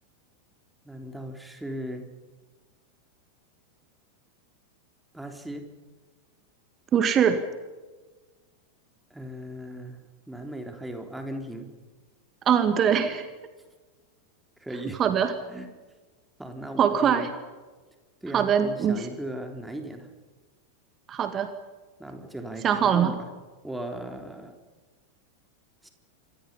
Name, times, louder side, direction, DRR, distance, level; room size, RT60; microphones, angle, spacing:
voice 1, 0.8-2.1 5.1-5.7 9.1-11.7 14.6-15.0 15.5-15.7 16.4-17.3 18.2-20.1 22.0-23.3 23.6-24.6 25.8-25.9, right 1 dB, 5° right, 5 dB, 3.8 m, -37 dB
voice 2, 6.9-7.4 12.5-13.3 15.0-15.3 16.8-17.3 18.3-19.1 21.1-21.5 22.6-23.1, right 8 dB, 25° right, 9 dB, 2.0 m, -22 dB
28.0 x 24.5 x 5.6 m, 1.3 s
figure-of-eight pair, 90°, 0 cm